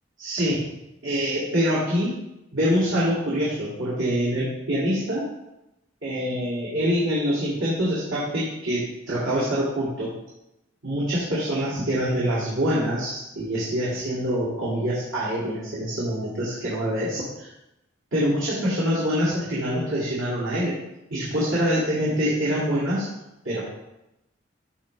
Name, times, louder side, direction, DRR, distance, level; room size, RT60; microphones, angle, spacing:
voice 1, 0.2-0.7 1.0-2.1 2.5-5.2 6.0-10.1 10.8-17.5 18.1-20.7 21.1-23.1 23.4-23.6, equal, 85° right, -8 dB, 2.1 m, -25 dB
12.5 x 4.5 x 3.1 m, 0.92 s
head